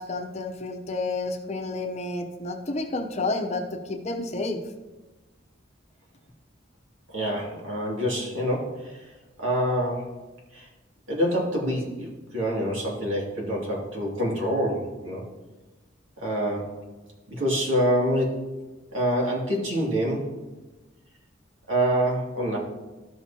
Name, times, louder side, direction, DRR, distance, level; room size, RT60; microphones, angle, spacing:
voice 1, 0.0-4.6, left 2 dB, 35° left, 4 dB, 0.8 m, -30 dB
voice 2, 7.1-9.1 9.4-10.1 10.5-10.7 11.1-15.2 16.2-16.7 17.3-18.4 18.9-20.3 21.7-22.6, equal, 85° right, -3 dB, 2.6 m, -26 dB
13.5 x 6.1 x 2.9 m, 1.2 s
head